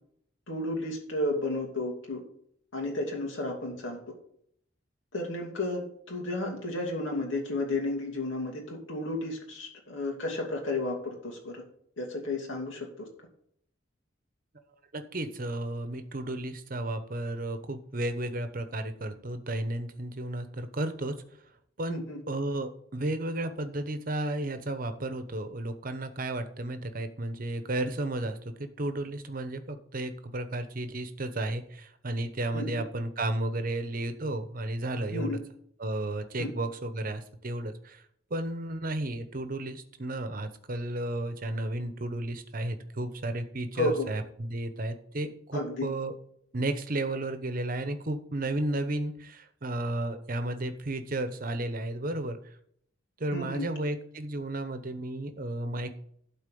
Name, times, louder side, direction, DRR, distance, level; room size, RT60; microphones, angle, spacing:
voice 1, 0.5-2.2 2.7-4.0 5.1-11.6 12.0-13.1 21.9-22.2 32.5-32.8 35.1-35.4 36.4-36.5 43.8-44.1 45.5-45.9 53.3-53.7, left 2 dB, 80° left, 0 dB, 2.7 m, -32 dB
voice 2, 14.9-21.1 21.8-22.0 22.3-35.4 35.8-38.0 38.3-46.1 46.5-52.5 53.2-55.9, right 1 dB, 45° right, 9 dB, 1.0 m, -33 dB
12.0 x 4.2 x 7.0 m, 0.68 s
head